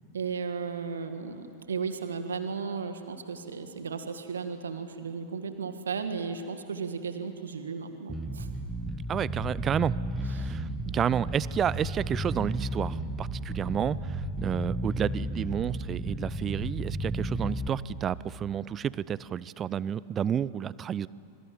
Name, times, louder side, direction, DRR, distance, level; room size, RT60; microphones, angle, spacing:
voice 1, 0.1-8.5 10.4-10.5, right 5 dB, 70° right, 8 dB, 1.9 m, -35 dB
Bass guitar, 8.1-17.7, right 1 dB, 5° right, 1.8 m, -33 dB
voice 2, 9.1-21.1, right 9 dB, 25° right, 21 dB, 0.5 m, -31 dB
26.0 x 24.5 x 7.7 m, 2.6 s
figure-of-eight pair, 90°, 0 cm